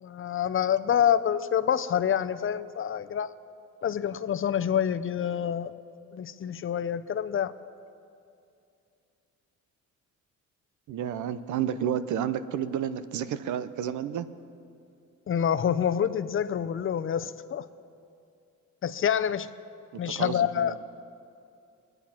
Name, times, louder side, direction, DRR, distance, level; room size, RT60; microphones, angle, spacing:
voice 1, 0.0-3.3 3.8-5.8 6.1-7.5 15.3-17.7 18.8-19.5 20.0-20.8, left 9 dB, 45° left, 12 dB, 0.7 m, -27 dB
voice 2, 10.9-14.3 20.1-20.7, right 9 dB, 75° right, 14 dB, 0.8 m, -31 dB
24.5 x 9.2 x 5.9 m, 2.5 s
cardioid pair, 90°, 30 cm